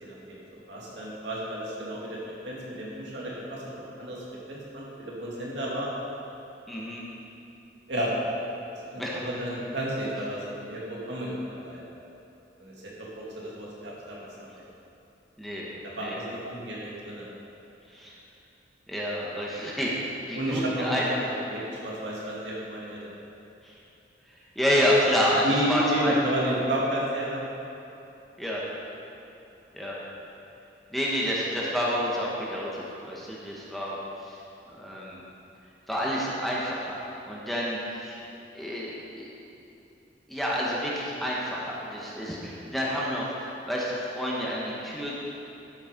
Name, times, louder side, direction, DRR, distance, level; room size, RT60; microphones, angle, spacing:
voice 1, 0.0-2.2 2.4-5.9 7.9-8.2 8.7-11.8 12.6-14.6 15.8-17.3 20.3-23.0 25.4-27.4, right 1 dB, 80° right, -5 dB, 2.4 m, -32 dB
voice 2, 6.7-7.0 9.0-9.2 15.4-15.7 16.0-16.2 17.9-18.1 18.9-21.0 21.3-21.4 23.6-23.7 24.5-26.1 28.4-28.6 29.7-30.0 30.9-34.0 34.2-34.4 34.7-35.2 35.9-38.2 38.5-39.3 40.3-45.1, equal, ahead, -6 dB, 1.3 m, -29 dB
12.0 x 6.6 x 5.3 m, 2.8 s
head